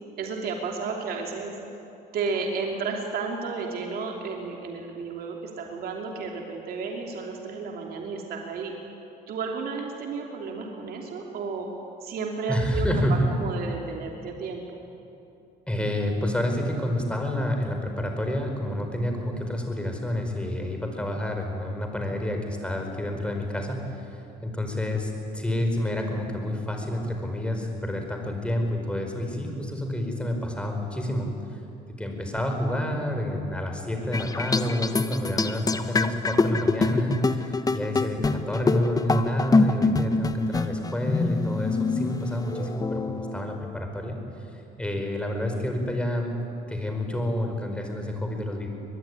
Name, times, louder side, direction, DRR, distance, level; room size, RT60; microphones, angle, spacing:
voice 1, 0.2-1.5 2.1-8.8 9.3-11.7 12.0-14.8, right 4 dB, 65° right, 1 dB, 3.1 m, -32 dB
voice 2, 12.5-13.3 15.7-24.0 24.4-31.6 31.9-44.2 44.5-46.3 46.7-48.7, left 1 dB, 5° left, 3 dB, 4.9 m, -29 dB
sound 1, 34.1-43.6, left 3 dB, 20° left, 1.2 m, -25 dB
23.0 x 21.0 x 9.9 m, 2.8 s
cardioid pair, 110°, 17 cm